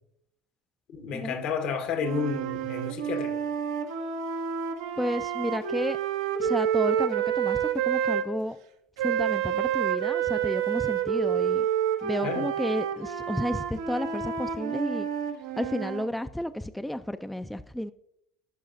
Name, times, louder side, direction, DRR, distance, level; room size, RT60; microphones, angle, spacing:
voice 1, 0.9-3.4 12.2-12.5, left 5 dB, 60° left, 1.2 m, -31 dB
sound 1, 2.0-8.3 9.0-16.1, right 9 dB, 85° right, 0.8 m, -29 dB
voice 2, 5.0-6.0 6.4-8.6 9.0-11.6 12.0-15.1 15.6-17.9, equal, 5° left, 0.4 m, -31 dB
11.5 x 5.5 x 2.6 m
hypercardioid pair, 75°, 2 cm